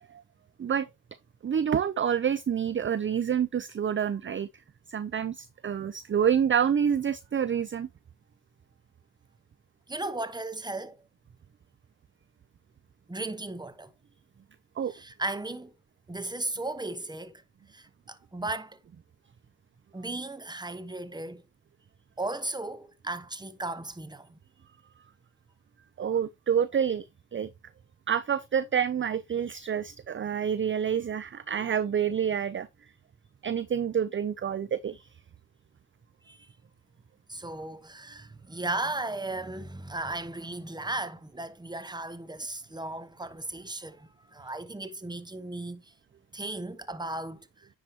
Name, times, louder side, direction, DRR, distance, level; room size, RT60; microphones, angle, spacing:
voice 1, 1.4-4.5 4.9-7.9 14.8-14.9 26.0-27.0 27.3-27.5 28.1-32.7 33.4-35.1, right 8 dB, 25° right, 0.5 m, -28 dB
voice 2, 9.9-11.0 13.1-13.9 14.9-15.7 16.1-17.3 17.7-18.8 19.9-21.4 22.2-24.4 36.3-36.5 37.3-45.9 46.3-47.7, right 2 dB, 10° right, 1.0 m, -36 dB
9.9 x 4.9 x 2.8 m
supercardioid pair, 60°, 46 cm